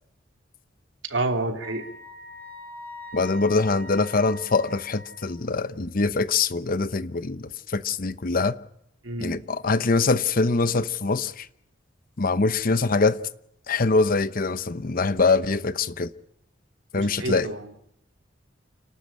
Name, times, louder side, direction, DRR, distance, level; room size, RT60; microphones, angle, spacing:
voice 1, 1.1-1.9 9.0-9.4 16.9-17.7, right 2 dB, 90° right, 2.8 m, -29 dB
Wind instrument woodwind instrument, 1.6-5.5, left 1 dB, 10° left, 3.2 m, -42 dB
voice 2, 3.1-8.5 9.2-11.5 12.2-13.2 13.7-16.1 16.9-17.5, left 3 dB, 50° left, 0.9 m, -23 dB
29.0 x 12.5 x 8.7 m
head